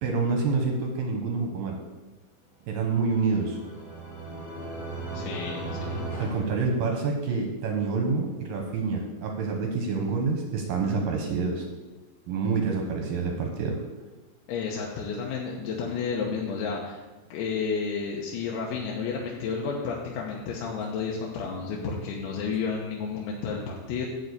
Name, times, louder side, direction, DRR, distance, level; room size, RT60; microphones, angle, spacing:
voice 1, 0.0-1.8 2.7-3.6 6.2-11.7 12.3-13.8, right 4 dB, 70° right, 2 dB, 2.2 m, -27 dB
sound 1, 2.9-7.4, right 2 dB, 30° left, 2.8 m, -36 dB
voice 2, 5.1-6.1 14.5-17.0 17.3-24.1, left 5 dB, 80° left, -2 dB, 3.4 m, -31 dB
11.5 x 4.5 x 8.2 m, 1.2 s
omnidirectional pair, 5.3 m